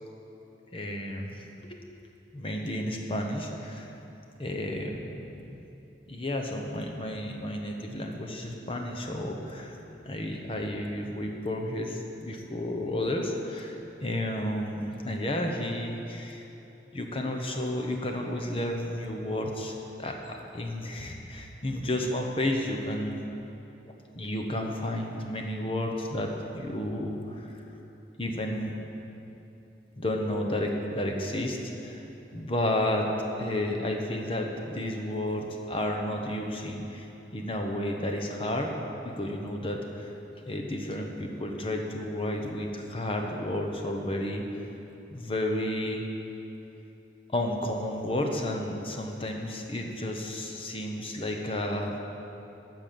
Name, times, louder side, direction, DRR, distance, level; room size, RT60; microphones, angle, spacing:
voice 1, 0.7-1.8 2.3-3.9 4.4-5.6 6.1-9.7 10.0-13.8 14.0-16.5 16.9-19.7 20.0-23.2 24.1-27.5 28.2-28.8 30.0-32.1 32.3-33.1 33.4-38.7 39.0-40.1 40.5-44.4 45.1-46.0 47.3-52.0, left 1 dB, 30° left, 2 dB, 1.0 m, -32 dB
12.0 x 5.8 x 7.7 m, 3.0 s
head